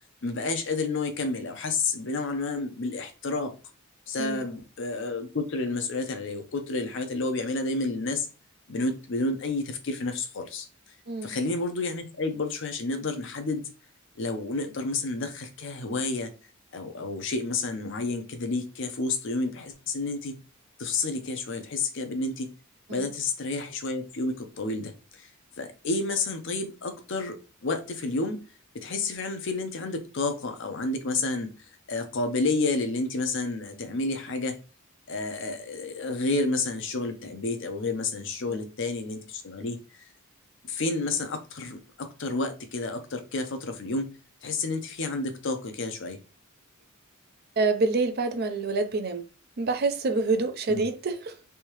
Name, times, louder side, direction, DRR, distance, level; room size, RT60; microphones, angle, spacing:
voice 1, 0.2-3.5 4.1-8.3 8.7-10.7 11.2-13.7 14.2-16.3 16.7-20.3 20.8-22.5 22.9-25.3 25.6-27.4 27.6-28.4 28.7-31.5 31.9-34.6 35.1-39.8 40.7-44.1 44.4-46.2 50.7-50.8, left 3 dB, 60° left, 0.6 m, -30 dB
voice 2, 11.1-11.4 22.9-23.1 38.5-38.7 47.6-49.2 49.6-51.3, right 3 dB, 50° right, 0.5 m, -27 dB
3.4 x 2.7 x 3.0 m
head